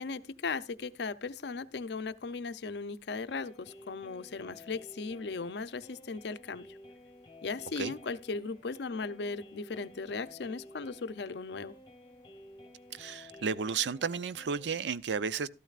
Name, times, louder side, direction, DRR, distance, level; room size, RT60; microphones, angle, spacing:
voice 1, 0.0-6.7 7.4-11.7, left 4 dB, 65° left, 0.5 m, -37 dB
sound 1, 3.3-14.8, left 1 dB, 25° left, 0.9 m, -53 dB
voice 2, 12.9-15.5, right 6 dB, 70° right, 0.5 m, -33 dB
13.0 x 12.5 x 2.4 m
head